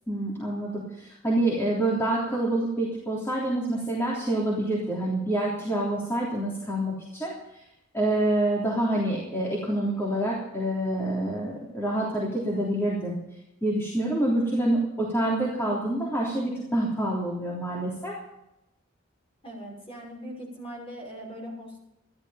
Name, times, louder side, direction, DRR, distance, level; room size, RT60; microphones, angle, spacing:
voice 1, 0.1-7.3 7.9-13.2 13.6-18.1, right 1 dB, 10° left, -6 dB, 3.4 m, -27 dB
voice 2, 19.4-21.8, equal, 30° left, -1 dB, 5.9 m, -40 dB
14.5 x 12.5 x 5.8 m, 0.86 s
head